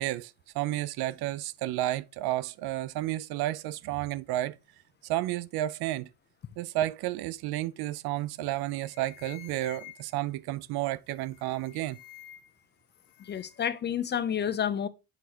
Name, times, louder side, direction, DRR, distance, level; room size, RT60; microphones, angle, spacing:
voice 1, 0.0-4.6 5.0-6.1 6.6-12.0, right 15 dB, 80° right, 0.5 m, -31 dB
sound 1, 8.2-8.4 8.7-10.3 11.2-12.6 12.9-13.7, left 15 dB, 65° left, 1.3 m, -51 dB
voice 2, 13.2-14.9, left 8 dB, 30° left, 0.4 m, -30 dB
8.1 x 4.7 x 2.7 m
cardioid pair, 135°, 37 cm